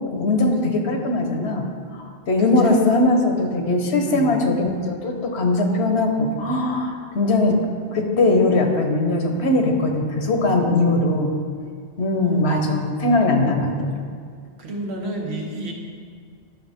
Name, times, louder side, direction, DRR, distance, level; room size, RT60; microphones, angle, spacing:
voice 1, 0.0-1.7 1.9-7.6 7.9-11.4 12.0-14.0, left 2 dB, 85° left, 3 dB, 1.3 m, -20 dB
voice 2, 2.4-2.8 4.0-4.4 12.2-12.6 14.6-15.7, right 2 dB, 85° right, 0 dB, 1.4 m, -31 dB
11.0 x 5.9 x 3.6 m, 2.1 s
omnidirectional pair, 1.1 m